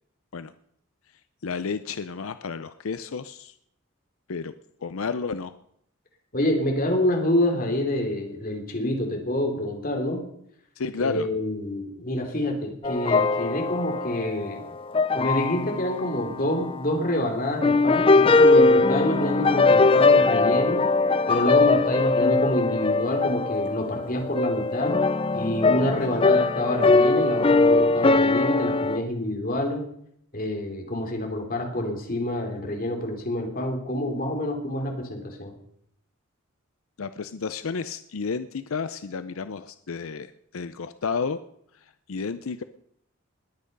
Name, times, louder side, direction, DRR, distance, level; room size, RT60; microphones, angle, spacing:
voice 1, 1.4-3.5 4.3-4.5 4.8-5.5 10.8-11.3 37.0-41.4 42.1-42.6, left 5 dB, 90° left, 12 dB, 0.6 m, -31 dB
voice 2, 6.3-10.2 11.0-14.6 15.2-20.8 21.3-25.0 25.3-29.8 30.3-35.5, left 1 dB, 45° left, 3 dB, 3.1 m, -27 dB
sound 1, 12.8-16.0 16.4-16.8 17.6-29.0, left 3 dB, 25° left, 0.6 m, -21 dB
20.0 x 8.7 x 5.3 m, 0.71 s
head